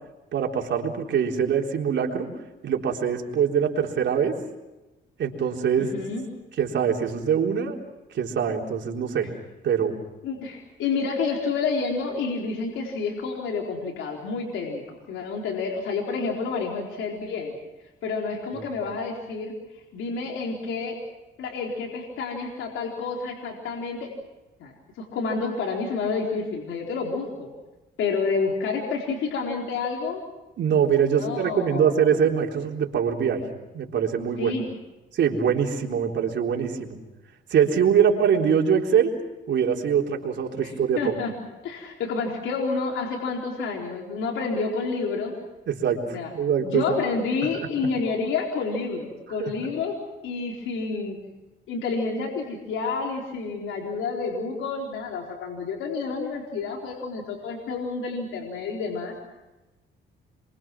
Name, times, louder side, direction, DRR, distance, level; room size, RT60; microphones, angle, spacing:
voice 1, 0.3-2.3 2.6-4.3 5.2-6.0 6.6-7.8 8.1-9.3 9.6-10.0 18.5-18.6 30.6-33.4 33.7-34.5 35.1-37.0 37.5-39.1 39.5-41.2 45.7-47.0 49.4-49.5, right 7 dB, 65° right, 1 dB, 3.9 m, -23 dB
voice 2, 5.8-6.2 10.2-17.6 18.0-19.5 19.9-21.0 21.4-24.1 24.6-27.5 28.0-30.2 31.2-31.9 34.4-34.6 40.6-41.3 41.6-45.3 46.1-46.3 46.6-50.0 50.2-51.2 51.7-59.1, left 4 dB, 80° left, 0 dB, 4.2 m, -29 dB
28.0 x 24.0 x 6.1 m, 1.1 s
cardioid pair, 90°, 20 cm